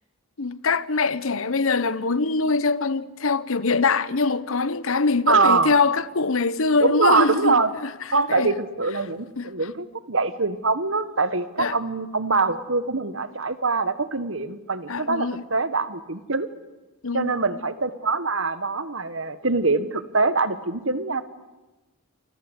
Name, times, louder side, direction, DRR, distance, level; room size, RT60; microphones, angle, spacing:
voice 1, 0.4-7.9 8.3-8.5 9.4-9.5 11.6-11.8 14.9-15.4 17.0-17.4, left 4 dB, 70° left, 1.0 m, -23 dB
voice 2, 5.3-5.7 6.8-7.7 8.1-16.5 17.1-21.2, right 4 dB, 60° right, 1.5 m, -23 dB
29.0 x 25.0 x 8.2 m
head